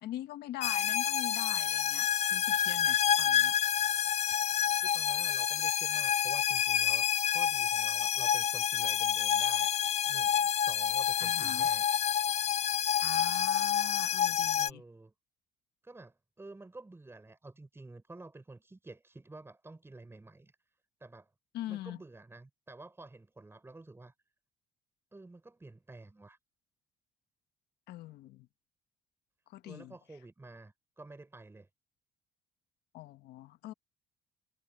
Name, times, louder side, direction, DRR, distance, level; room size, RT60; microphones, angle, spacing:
voice 1, 0.0-3.5 11.2-11.7 13.0-14.8 21.5-22.0 27.9-28.5 29.5-29.9 32.9-33.7, left 14 dB, 75° left, 1.2 m, -43 dB
sound 1, 0.6-14.7, left 9 dB, 40° left, 0.5 m, -28 dB
voice 2, 4.8-9.7 10.1-11.8 14.6-15.1 15.8-20.5 21.0-21.3 21.7-24.1 25.1-26.4 29.6-31.7, right 2 dB, 15° right, 5.2 m, -51 dB
cardioid pair, 110°, 17 cm